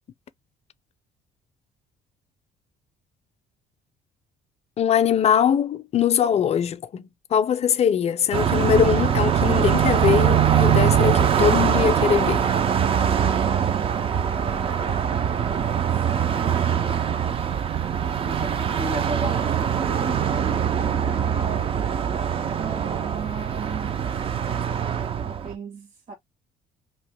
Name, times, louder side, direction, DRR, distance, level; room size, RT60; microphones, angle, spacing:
voice 1, 4.8-12.4, left 8 dB, 40° left, 0.4 m, -22 dB
Car passing by, 8.3-25.5, right 8 dB, 35° right, 0.4 m, -22 dB
voice 2, 13.3-15.2 15.4-17.0 18.2-21.7 22.5-24.0 25.2-26.1, right 3 dB, 55° right, 1.6 m, -36 dB
2.9 x 2.1 x 3.3 m
cardioid pair, 110°, 17 cm